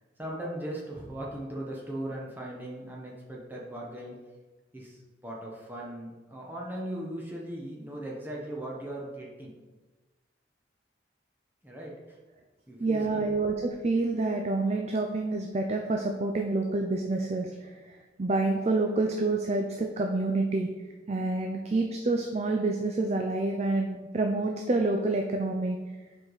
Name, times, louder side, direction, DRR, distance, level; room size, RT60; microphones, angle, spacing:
voice 1, 0.2-4.2 4.7-9.5 11.6-12.2 12.7-13.3, right 1 dB, 10° right, -3 dB, 0.9 m, -38 dB
voice 2, 12.8-17.7 18.2-20.7 21.1-25.8, right 2 dB, 35° right, 3 dB, 0.5 m, -28 dB
7.4 x 4.9 x 4.0 m, 1.2 s
head